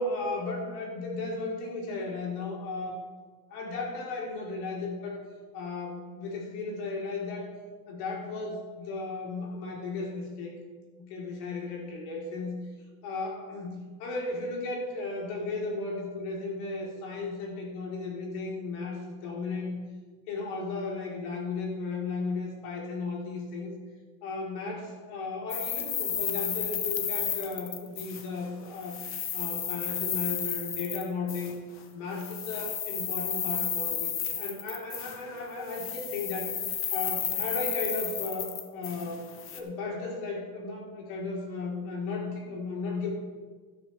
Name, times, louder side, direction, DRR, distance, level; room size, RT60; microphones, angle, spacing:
voice 1, 0.0-3.0 3.5-5.2 5.5-7.5 7.9-10.5 11.0-12.6 13.0-19.8 20.3-23.7 24.2-29.0 29.3-31.5 31.9-36.5 36.9-39.2 39.5-43.1, left 3 dB, 85° left, -1 dB, 3.6 m, -35 dB
sound 1, 25.5-28.5 28.7-31.5 32.1-35.4 35.7-39.6, left 9 dB, 30° left, 0.9 m, -33 dB
12.0 x 12.0 x 3.3 m, 1.4 s
cardioid pair, 160°, 44 cm